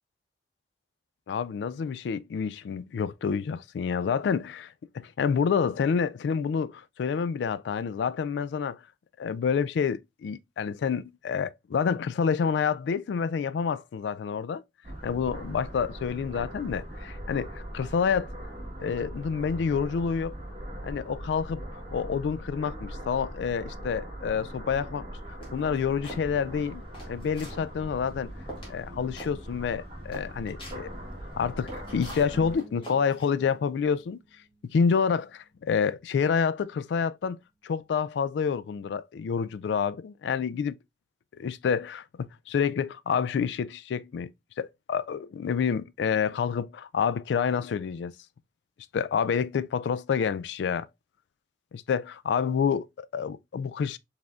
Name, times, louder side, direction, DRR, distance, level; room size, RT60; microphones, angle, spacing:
voice 1, 1.3-8.8 9.2-14.6 15.0-17.5 17.7-18.3 18.8-20.4 20.8-21.6 21.9-26.8 27.1-28.3 28.7-30.9 31.4-34.2 34.7-37.4 37.6-40.7 41.4-42.0 42.5-44.3 44.6-48.1 48.9-50.9 51.7-54.0, left 6 dB, 70° left, 0.3 m, -28 dB
sound 1, 14.8-32.5, equal, 30° right, 1.4 m, -40 dB
sound 2, 25.4-26.2 26.7-27.6 28.1-28.2 28.5-28.8 29.2-29.3 29.7-29.8 30.1-30.8 31.4-33.6, equal, 30° left, 1.9 m, -44 dB
sound 3, 32.3-38.6, equal, 5° right, 0.8 m, -56 dB
5.0 x 3.4 x 2.3 m
head